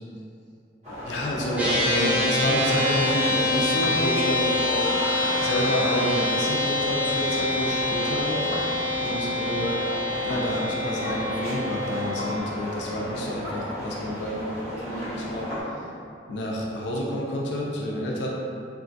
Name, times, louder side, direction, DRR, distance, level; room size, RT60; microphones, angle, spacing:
sound 1, 0.8-15.6, equal, 40° right, 0.9 m, -34 dB
voice 1, 1.1-5.0 5.4-8.7 9.0-9.8 10.2-15.8 16.3-18.3, equal, 75° left, -3 dB, 0.4 m, -29 dB
sound 2, 1.6-12.4, left 2 dB, 10° right, 0.4 m, -26 dB
3.1 x 2.3 x 2.5 m, 2.5 s
head